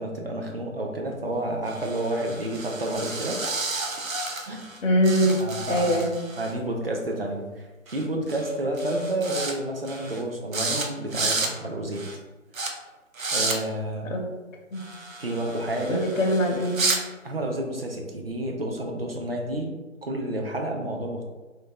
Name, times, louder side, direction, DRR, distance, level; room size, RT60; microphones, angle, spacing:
voice 1, 0.0-3.6 4.5-4.6 5.4-6.0 6.4-12.1 13.3-14.1 15.2-16.0 17.2-19.7 20.0-21.2, right 1 dB, 50° right, 1 dB, 0.5 m, -30 dB
sound 1, 1.7-4.8 5.0-6.5 7.9-8.0 8.3-8.5 8.8-9.5 9.9-10.2 10.5-10.9 11.1-11.5 11.9-12.2 12.5-12.7 13.1-13.6 14.8-17.0, right 3 dB, 85° right, 0.6 m, -31 dB
voice 2, 4.8-5.4 5.7-6.1 14.0-14.3 14.7-14.8 15.9-16.9, equal, 75° left, -1 dB, 0.6 m, -22 dB
2.5 x 2.2 x 2.9 m, 1.2 s
figure-of-eight pair, 150°, 39 cm